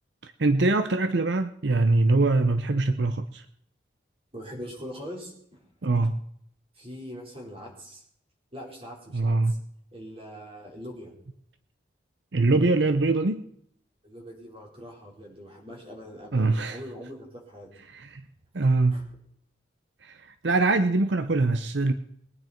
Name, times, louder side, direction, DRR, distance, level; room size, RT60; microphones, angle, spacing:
voice 1, 0.2-3.4 5.8-6.1 9.1-9.5 12.3-13.4 16.3-16.8 17.9-18.2 18.5-19.0 20.0-21.9, right 2 dB, 75° right, 9 dB, 0.7 m, -23 dB
voice 2, 4.3-5.6 6.7-8.0 8.5-9.6 9.9-11.1 14.0-17.7 18.6-19.0, equal, 30° right, -2 dB, 4.9 m, -42 dB
21.5 x 9.6 x 4.5 m, 0.71 s
head